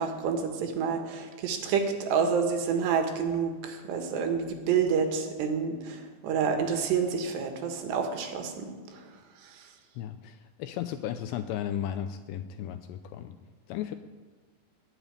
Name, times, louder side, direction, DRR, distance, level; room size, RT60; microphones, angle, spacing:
voice 1, 0.0-9.1 9.4-9.7, right 6 dB, 70° right, 5 dB, 3.4 m, -29 dB
voice 2, 10.0-13.4 13.7-14.0, left 10 dB, 80° left, 9 dB, 2.6 m, -35 dB
19.5 x 7.2 x 9.6 m, 1.3 s
omnidirectional pair, 5.4 m